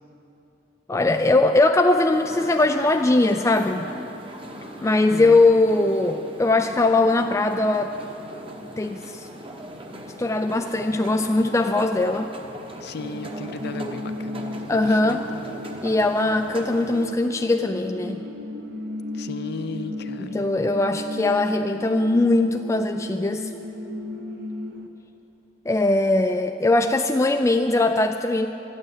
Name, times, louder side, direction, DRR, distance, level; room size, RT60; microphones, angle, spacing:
voice 1, 0.9-3.9 4.8-8.0 8.8-9.3 10.2-12.3 14.7-15.3 15.8-18.2 20.3-23.5 25.7-28.5, left 2 dB, 15° left, 4 dB, 0.4 m, -20 dB
sound 1, 2.1-17.1, right 1 dB, 30° right, 1.1 m, -39 dB
voice 2, 4.9-5.4 12.8-15.5 19.1-20.5, left 3 dB, 60° left, 10 dB, 0.6 m, -36 dB
sound 2, 13.0-24.9, left 1 dB, 60° right, 1.0 m, -35 dB
13.5 x 8.9 x 9.4 m, 3.0 s
head